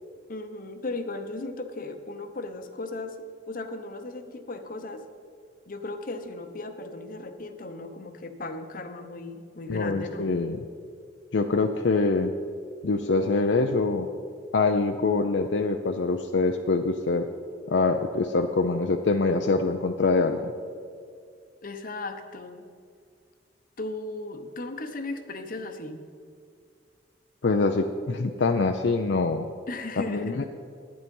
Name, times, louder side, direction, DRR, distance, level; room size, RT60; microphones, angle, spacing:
voice 1, 0.3-3.2 3.5-5.0 5.7-10.4 21.6-22.6 23.8-26.0 29.7-30.5, left 2 dB, 50° left, 7 dB, 0.9 m, -36 dB
voice 2, 9.7-10.6 11.3-12.3 12.8-14.1 14.5-17.3 17.7-20.5 27.4-29.5 30.1-30.5, left 3 dB, 70° left, 5 dB, 0.5 m, -24 dB
11.5 x 9.6 x 5.4 m, 2.2 s
head